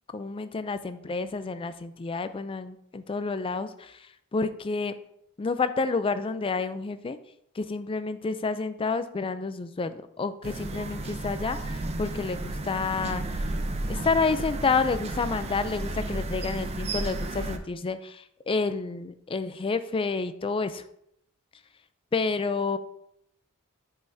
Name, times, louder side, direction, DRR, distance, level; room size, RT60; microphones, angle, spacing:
voice 1, 0.1-4.9 5.4-7.2 7.6-13.4 13.9-20.8 22.1-22.8, left 4 dB, 25° left, 12 dB, 0.3 m, -29 dB
sound 1, 10.4-17.6, right 2 dB, 30° right, 0.5 m, -33 dB
9.0 x 5.6 x 2.7 m, 0.75 s
head